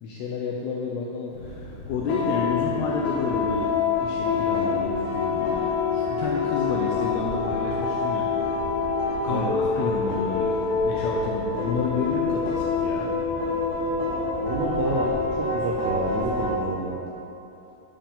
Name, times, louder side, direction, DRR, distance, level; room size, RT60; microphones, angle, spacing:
voice 1, 0.0-3.7 4.0-8.3 9.2-13.1, left 4 dB, 85° left, -2 dB, 2.3 m, -30 dB
sound 1, 1.3-16.5, left 4 dB, 70° left, 3.5 m, -26 dB
voice 2, 14.4-17.0, right 3 dB, 85° right, -3 dB, 2.2 m, -29 dB
11.5 x 5.6 x 3.6 m, 2.8 s
omnidirectional pair, 5.3 m